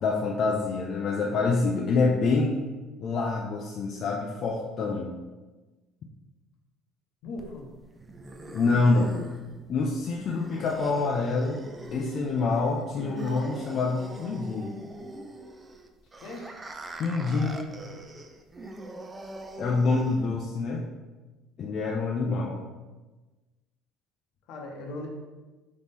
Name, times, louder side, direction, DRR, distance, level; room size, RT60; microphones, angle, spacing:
voice 1, 0.0-2.6 3.0-5.1 8.5-9.1 9.7-11.6 11.9-14.7 17.0-17.6 19.6-20.9 21.6-22.6, left 3 dB, 50° left, -1 dB, 0.4 m, -26 dB
voice 2, 7.2-7.7 16.2-16.5 24.5-25.1, left 2 dB, 70° left, 1 dB, 0.9 m, -38 dB
sound 1, 7.4-20.4, right 2 dB, 20° right, 0.4 m, -42 dB
3.5 x 3.1 x 4.1 m, 1.2 s
cardioid pair, 105°, 0 cm